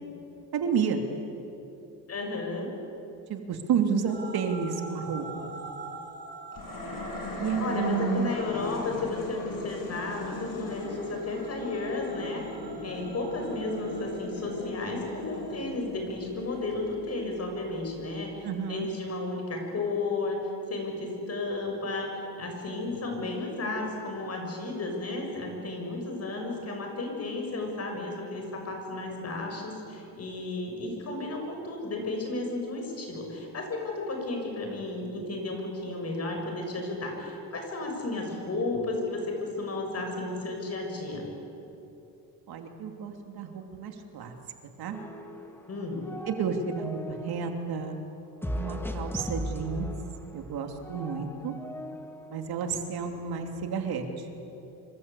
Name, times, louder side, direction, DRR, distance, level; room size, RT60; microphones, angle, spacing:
voice 1, 0.5-1.0 3.3-5.5 7.4-8.3 18.4-18.9 42.5-44.3 44.8-45.0 46.3-48.0 48.5-49.9 50.3-51.5 52.3-54.3, right 6 dB, 65° right, 4 dB, 3.0 m, -31 dB
voice 2, 2.1-2.7 7.6-12.4 12.8-20.4 20.7-41.3 45.7-46.0, left 2 dB, 40° left, 2 dB, 6.7 m, -33 dB
sound 1, 4.1-15.6, right 3 dB, 25° right, 3.4 m, -46 dB
sound 2, 6.5-17.9, left 2 dB, 55° left, 7.3 m, -39 dB
sound 3, 44.9-45.7 45.9-47.6 48.4-52.5, left 1 dB, 5° left, 2.0 m, -38 dB
26.5 x 25.5 x 8.5 m, 2.9 s
cardioid pair, 135°, 40 cm